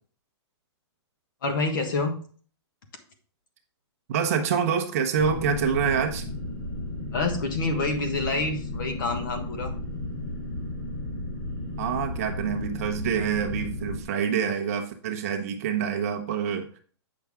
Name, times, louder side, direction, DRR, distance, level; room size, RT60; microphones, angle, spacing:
voice 1, 1.4-2.2 7.1-9.7, left 3 dB, 45° left, 6 dB, 1.4 m, -27 dB
voice 2, 4.1-6.2 11.8-16.8, right 7 dB, 30° right, 4 dB, 0.9 m, -26 dB
sound 1, 5.2-14.0, left 1 dB, 25° left, 2.2 m, -34 dB
8.6 x 5.8 x 3.6 m, 0.43 s
hypercardioid pair, 180°, 15 cm